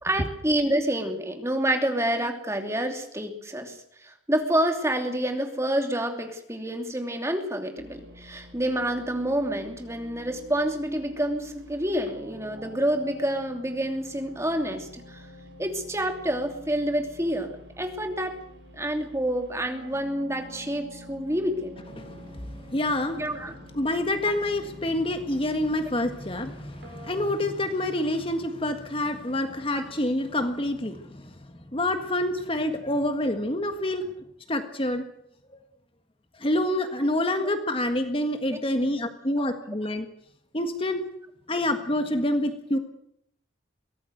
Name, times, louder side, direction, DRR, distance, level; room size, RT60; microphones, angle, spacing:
voice 1, 0.0-15.2 15.6-18.4 18.8-21.8 23.2-23.5 29.7-29.8 38.5-38.6, right 1 dB, 15° right, 5 dB, 2.8 m, -28 dB
sound 1, 7.8-27.2, equal, 60° right, 6.4 m, -47 dB
voice 2, 22.0-23.2 23.7-31.3 31.7-34.1 34.5-35.0 36.4-40.0 40.5-41.0 41.5-42.8, left 1 dB, 30° left, 7 dB, 1.6 m, -27 dB
23.0 x 17.5 x 8.0 m, 0.70 s
head